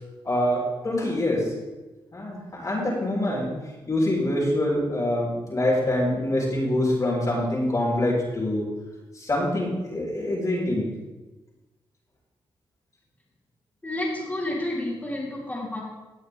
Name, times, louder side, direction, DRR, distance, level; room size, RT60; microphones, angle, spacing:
voice 1, 0.2-1.5 2.1-3.5 3.9-8.7 9.1-10.9, left 1 dB, 35° left, -5 dB, 4.2 m, -25 dB
voice 2, 13.8-15.8, left 1 dB, 15° left, -6 dB, 4.1 m, -30 dB
18.5 x 6.5 x 3.5 m, 1.1 s
cardioid pair, 75°, 10 cm